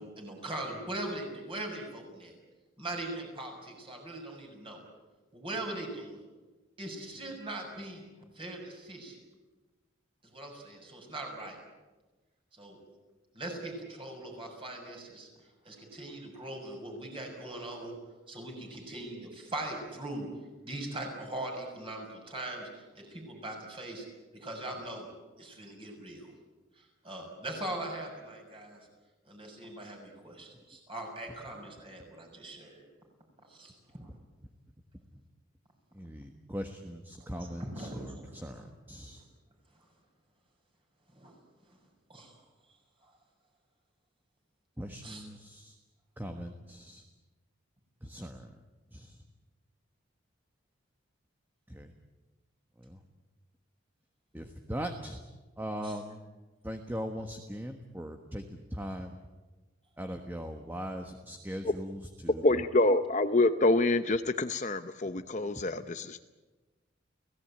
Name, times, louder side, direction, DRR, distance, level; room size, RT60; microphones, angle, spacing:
voice 1, 0.0-2.3 2.8-4.8 5.3-6.2 6.8-8.0 8.3-9.2 10.2-11.6 12.5-12.8 13.3-15.3 15.6-17.9 18.3-20.3 20.6-24.0 24.3-25.1 25.4-26.3 26.8-28.8 29.2-32.8 33.5-34.1 37.2-38.6 39.2-39.3 41.1-41.4 41.7-41.8 42.1-42.3 43.0-43.1 45.0-45.2 55.8-56.0, right 1 dB, 25° right, 1 dB, 6.8 m, -41 dB
voice 2, 36.0-37.6 38.4-39.2 44.8-45.7 46.2-47.0 48.0-48.4 48.9-49.1 51.7-51.9 54.3-55.2 55.6-56.2 56.6-58.4 58.7-59.1 60.0-62.3, equal, 10° right, 5 dB, 1.4 m, -39 dB
voice 3, 62.4-66.2, left 2 dB, 35° left, 9 dB, 0.7 m, -26 dB
30.0 x 17.5 x 8.9 m, 1.2 s
head